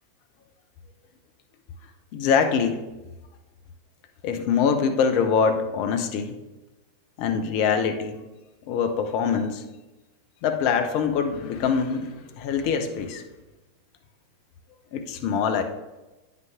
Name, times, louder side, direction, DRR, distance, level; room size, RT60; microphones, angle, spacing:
voice 1, 2.1-2.8 4.2-6.3 7.2-8.2 8.7-9.6 10.4-13.2 14.9-15.6, left 6 dB, 45° left, 6 dB, 0.8 m, -24 dB
9.2 x 5.9 x 3.6 m, 1.1 s
figure-of-eight pair, 90°, 0 cm